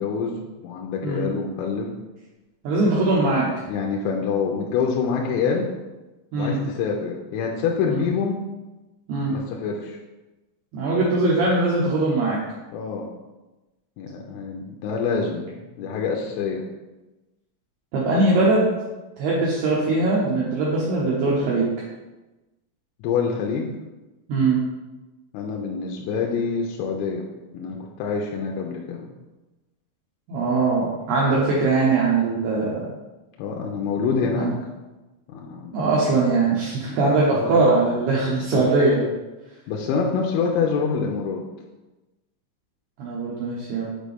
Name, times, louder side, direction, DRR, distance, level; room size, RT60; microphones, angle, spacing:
voice 1, 0.0-1.9 3.7-5.7 6.4-8.4 9.3-10.0 12.7-13.1 14.0-16.6 23.0-23.7 25.3-27.3 27.5-29.1 33.4-34.5 35.3-35.7 36.8-37.6 38.1-38.6 39.7-41.4, left 5 dB, 85° left, 0 dB, 3.1 m, -26 dB
voice 2, 2.6-3.5 6.3-6.6 7.9-8.0 9.1-9.3 10.7-12.4 17.9-18.7 19.2-21.7 24.3-24.6 30.3-32.9 34.3-34.5 35.7-39.1 43.0-43.9, right 3 dB, 75° right, -6 dB, 2.5 m, -21 dB
7.5 x 4.4 x 3.5 m, 1.1 s
omnidirectional pair, 5.7 m